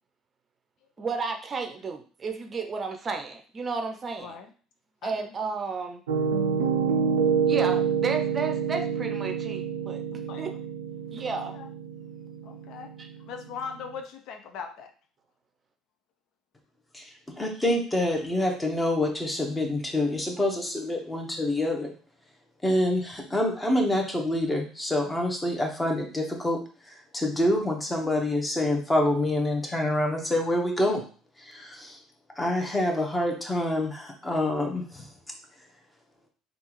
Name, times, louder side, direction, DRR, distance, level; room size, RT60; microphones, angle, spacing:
voice 1, 1.0-4.4 5.0-6.0 7.5-10.0 10.4-10.5 11.1-11.6 13.0-13.1, right 4 dB, 35° right, 5 dB, 0.5 m, -32 dB
voice 2, 5.0-5.3 10.3-10.4 11.3-11.7 12.4-12.9 13.3-14.9 22.9-23.0, left 6 dB, 65° left, 6 dB, 0.4 m, -40 dB
Piano, 6.1-13.9, right 6 dB, 85° right, 0.4 m, -28 dB
voice 3, 17.3-21.9 22.6-26.6 26.9-31.0 31.4-32.0 32.4-35.0, left 1 dB, 15° left, 2 dB, 1.0 m, -26 dB
3.5 x 2.4 x 3.0 m, 0.40 s
hypercardioid pair, 65°, 0 cm